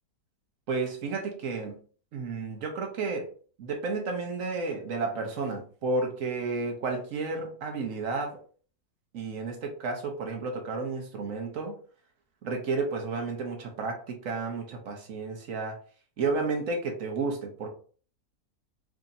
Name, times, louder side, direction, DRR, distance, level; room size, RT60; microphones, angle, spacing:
voice 1, 0.7-1.8 2.1-3.3 3.6-8.4 9.1-11.8 12.4-15.8 16.2-17.7, right 3 dB, 60° right, 1.1 m, -32 dB
4.8 x 2.8 x 2.6 m
omnidirectional pair, 1.8 m